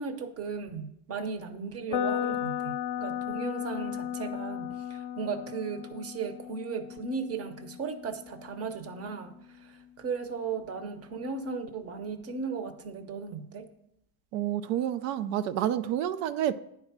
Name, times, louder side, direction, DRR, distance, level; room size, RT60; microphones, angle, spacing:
voice 1, 0.0-13.7, right 5 dB, 30° right, 10 dB, 0.8 m, -36 dB
sound 1, 1.9-9.8, left 10 dB, 50° left, 0.6 m, -36 dB
voice 2, 14.3-16.5, right 11 dB, 85° right, 12 dB, 0.6 m, -29 dB
9.8 x 4.6 x 5.9 m, 0.77 s
supercardioid pair, 125°, 50 cm